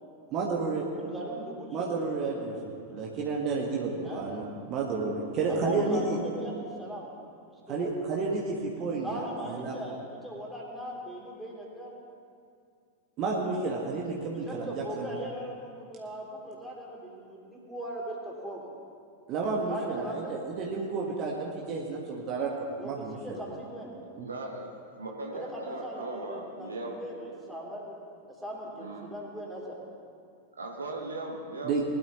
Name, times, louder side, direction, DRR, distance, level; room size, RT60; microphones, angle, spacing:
voice 1, 0.3-0.8 1.7-2.6 2.9-6.2 7.7-9.8 13.2-15.1 19.3-22.5 22.8-23.4 24.2-24.3 31.6-31.8, right 4 dB, 35° right, -2 dB, 1.6 m, -31 dB
voice 2, 0.9-2.0 4.0-4.3 5.5-7.1 7.4-7.9 9.0-11.9 14.4-18.7 19.7-20.3 22.8-23.9 25.3-28.0 28.3-29.8, equal, ahead, -4 dB, 3.1 m, -39 dB
voice 3, 24.2-24.7 25.0-27.0 28.8-29.1 30.6-31.8, right 2 dB, 75° right, 1 dB, 1.4 m, -38 dB
20.5 x 12.0 x 3.1 m, 2.3 s
figure-of-eight pair, 90°, 0 cm